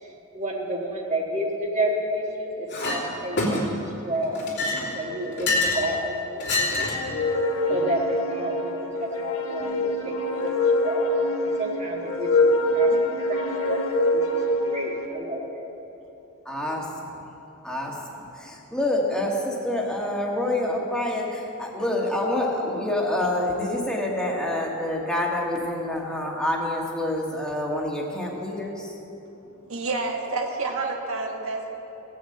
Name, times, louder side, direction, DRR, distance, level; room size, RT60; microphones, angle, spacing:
voice 1, 0.0-4.6 4.9-7.2 7.7-10.5 10.8-13.0 13.3-13.8 14.1-15.6, right 1 dB, 35° right, -1 dB, 1.5 m, -31 dB
Chink clink, 2.7-3.0 3.4-3.9 4.4-5.9 6.4-7.1, left 2 dB, 55° left, 2.9 m, -26 dB
sound 1, 6.9-15.1, left 1 dB, 75° left, 1.1 m, -24 dB
voice 2, 16.5-17.2 17.6-28.9, left 1 dB, 5° left, -2 dB, 1.6 m, -27 dB
voice 3, 29.7-31.7, right 3 dB, 75° right, 2 dB, 1.5 m, -29 dB
17.0 x 6.5 x 7.8 m, 3.0 s
head